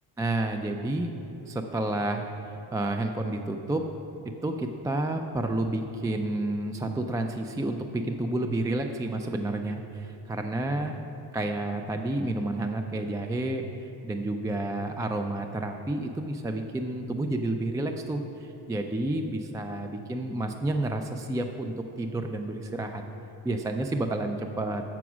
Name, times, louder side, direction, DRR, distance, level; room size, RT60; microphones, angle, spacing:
voice 1, 0.2-1.1 1.4-3.9 4.4-11.0 11.3-23.0 23.4-24.8, right 2 dB, 10° right, 5 dB, 0.3 m, -30 dB
7.0 x 6.0 x 6.1 m, 3.0 s
cardioid pair, 90°, 41 cm